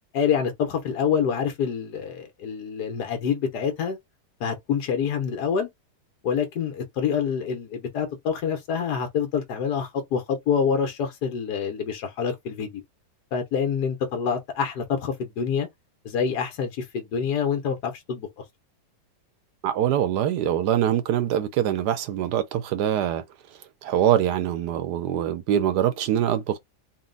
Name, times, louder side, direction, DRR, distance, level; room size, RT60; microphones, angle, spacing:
voice 1, 0.1-4.0 4.4-5.7 6.2-12.8 13.3-15.7 16.0-18.3, left 7 dB, 70° left, 1.5 m, -26 dB
voice 2, 19.6-23.2 23.8-26.6, right 10 dB, 75° right, 1.2 m, -23 dB
4.1 x 2.2 x 3.9 m
omnidirectional pair, 1.9 m